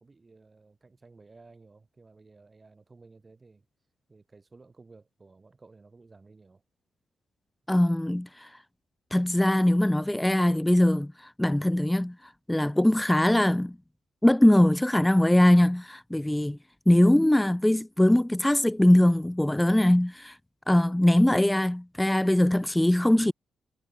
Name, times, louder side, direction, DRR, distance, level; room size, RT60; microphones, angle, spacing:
voice 1, 0.0-3.7 4.1-6.6, right 3 dB, 30° right, 5.9 m, -55 dB
voice 2, 7.7-8.5 9.1-11.1 11.4-12.2 12.5-13.8 14.2-16.6 16.9-20.4 20.7-23.3, left 1 dB, 10° left, 0.6 m, -21 dB
cardioid pair, 70°, 0 cm